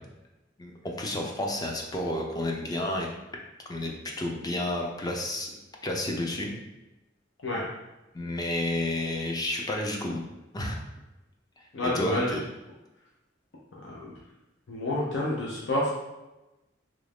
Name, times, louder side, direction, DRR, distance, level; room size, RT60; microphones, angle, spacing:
voice 1, 0.6-3.1 3.7-5.5 5.8-6.5 8.1-10.3 10.5-10.8 11.8-12.4, left 1 dB, 20° left, 0 dB, 0.5 m, -31 dB
voice 2, 11.7-12.4 13.8-14.1 14.7-15.9, left 1 dB, 70° left, -5 dB, 0.6 m, -29 dB
3.1 x 2.5 x 3.4 m, 1.0 s
head